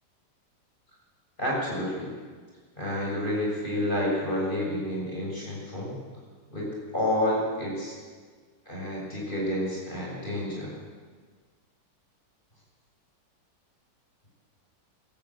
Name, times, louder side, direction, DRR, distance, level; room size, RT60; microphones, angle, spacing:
voice 1, 1.4-2.1 2.8-6.0 6.5-8.0 8.7-10.7, left 1 dB, 25° left, -4 dB, 7.7 m, -29 dB
22.5 x 13.0 x 9.2 m, 1.5 s
omnidirectional pair, 1.9 m